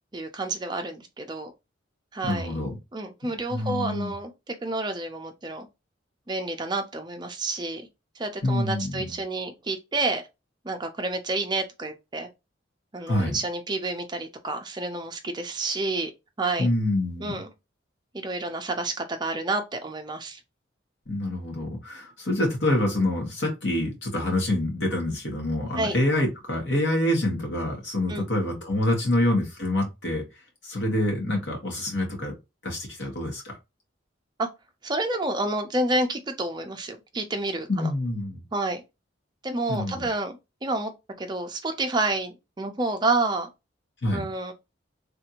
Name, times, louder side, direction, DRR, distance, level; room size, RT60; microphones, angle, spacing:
voice 1, 0.1-1.5 2.1-2.5 2.9-5.7 6.3-7.8 8.2-10.2 10.6-12.3 12.9-16.1 16.4-16.7 17.2-17.5 18.1-20.4 25.8-26.0 28.1-28.3 34.4-34.5 34.8-37.9 38.5-38.8 39.4-40.9 41.2-43.5 44.1-44.5, right 2 dB, 25° right, 0.5 m, -29 dB
voice 2, 2.2-2.7 3.5-4.1 8.4-9.1 13.1-13.4 16.6-17.3 21.1-30.2 30.6-32.3 32.6-33.6 37.7-38.4 39.7-40.1 44.0-44.3, left 1 dB, 75° left, 1.5 m, -26 dB
3.3 x 2.6 x 2.8 m
head